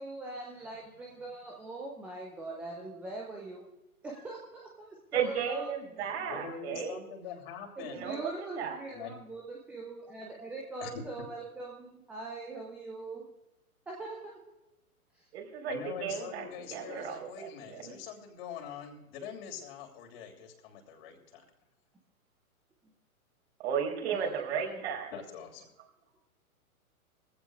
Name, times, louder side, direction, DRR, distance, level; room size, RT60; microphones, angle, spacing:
voice 1, 0.0-3.6 4.0-5.7 6.0-6.1 6.3-6.9 7.8-13.2 13.9-14.5 15.1-15.3 24.1-24.8, right 2 dB, 5° right, -2 dB, 0.4 m, -42 dB
voice 2, 5.1-7.0 7.9-8.3 8.6-8.8 15.3-17.9 23.6-25.1, right 8 dB, 45° right, 1 dB, 4.4 m, -34 dB
voice 3, 6.3-8.1 8.9-9.1 10.8-11.0 15.7-21.4 25.1-25.6, left 7 dB, 40° left, 3 dB, 3.0 m, -43 dB
21.0 x 15.5 x 2.4 m, 0.93 s
figure-of-eight pair, 115°, 44 cm